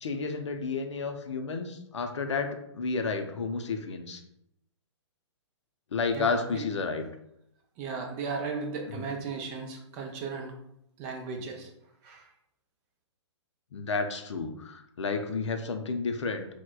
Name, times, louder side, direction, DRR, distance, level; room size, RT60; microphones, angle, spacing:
voice 1, 0.0-4.2 5.9-7.1 8.9-9.1 11.4-11.5 13.7-16.5, left 4 dB, 70° left, 6 dB, 0.5 m, -31 dB
voice 2, 6.1-6.6 7.8-10.5 11.0-11.7 12.0-12.2, right 4 dB, 30° right, 2 dB, 0.5 m, -36 dB
4.4 x 2.1 x 2.3 m, 0.79 s
figure-of-eight pair, 120°, 15 cm